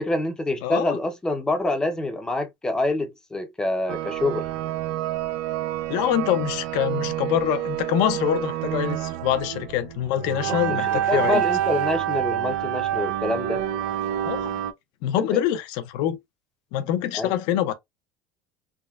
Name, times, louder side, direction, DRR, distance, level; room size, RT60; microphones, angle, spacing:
voice 1, 0.0-4.5 10.5-10.8 11.1-13.6 15.3-15.4 17.1-17.3, left 2 dB, 10° left, 0.5 m, -26 dB
voice 2, 0.6-1.0 5.9-11.4 14.3-14.5 15.0-16.2 16.7-17.7, left 11 dB, 60° left, 0.5 m, -25 dB
sound 1, 3.9-14.7, right 12 dB, 80° right, 0.4 m, -27 dB
3.4 x 2.1 x 2.2 m
cardioid pair, 155°, 8 cm